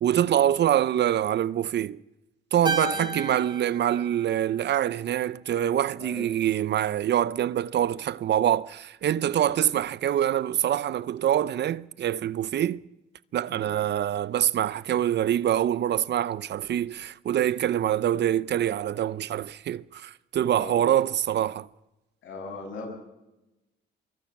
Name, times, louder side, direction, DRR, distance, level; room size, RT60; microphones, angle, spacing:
voice 1, 0.0-2.0 2.5-12.8 13.3-21.7, right 11 dB, 60° right, 0.7 m, -25 dB
Keyboard (musical), 2.6-5.2, right 2 dB, 25° right, 5.0 m, -34 dB
voice 2, 2.8-3.5 6.0-6.5 9.3-9.6 13.5-13.8 17.9-18.0 20.4-20.8 22.2-23.0, left 3 dB, 75° left, 7.8 m, -41 dB
25.0 x 23.0 x 6.0 m
cardioid pair, 90°, 20 cm